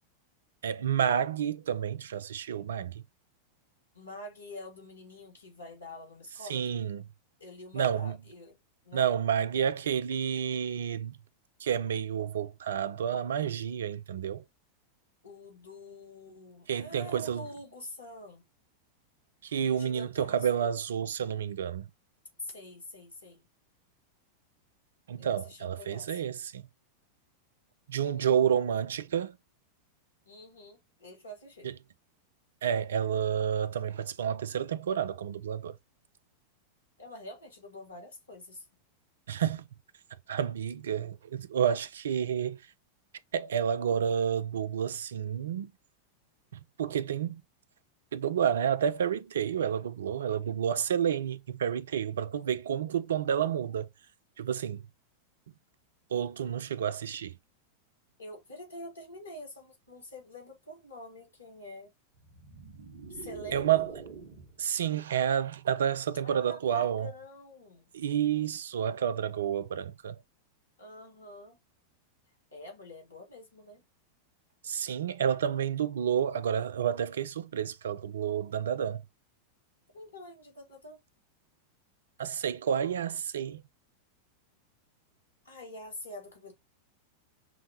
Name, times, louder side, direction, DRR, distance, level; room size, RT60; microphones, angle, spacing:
voice 1, 0.6-3.0 6.5-7.0 7.7-8.2 8.9-11.2 11.6-14.4 16.7-17.5 19.4-21.9 25.1-26.6 27.9-29.4 31.6-31.7 32.6-35.8 39.3-39.6 40.3-42.6 43.3-45.7 46.5-47.4 48.1-53.9 54.4-54.8 56.1-57.4 63.5-63.9 64.6-67.1 67.9-70.2 74.6-79.0 82.2-83.6, right 8 dB, 65° right, 0.3 m, -30 dB
voice 2, 3.9-6.9 7.4-8.6 8.8-9.1 15.2-18.4 19.6-20.8 22.4-23.4 25.2-26.3 28.2-28.4 30.3-31.7 37.0-38.6 58.2-61.9 63.1-63.9 66.2-67.9 70.8-71.6 72.5-73.8 79.9-81.0 85.4-86.5, left 1 dB, 75° left, 1.5 m, -46 dB
sound 1, 62.1-64.7, right 5 dB, 50° right, 1.3 m, -45 dB
6.0 x 2.1 x 2.9 m
figure-of-eight pair, 90°, 0 cm